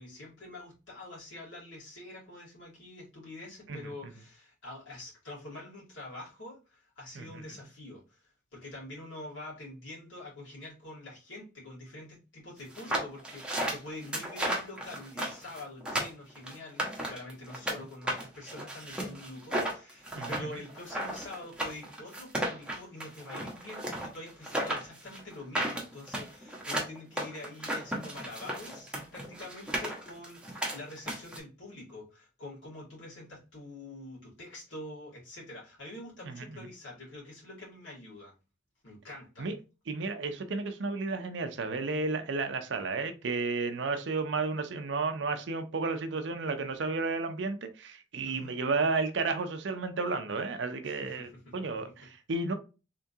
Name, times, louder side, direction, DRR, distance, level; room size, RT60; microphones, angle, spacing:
voice 1, 0.0-38.3 38.8-39.5 48.2-48.6 50.8-51.5, left 1 dB, 80° left, 2.3 m, -46 dB
voice 2, 7.2-7.5 20.1-20.5 36.2-36.5 39.4-39.5 39.9-52.5, right 3 dB, 70° right, 0.5 m, -32 dB
sound 1, 12.7-17.8 18.1-31.4, right 1 dB, 5° right, 0.9 m, -34 dB
3.7 x 3.5 x 2.7 m
head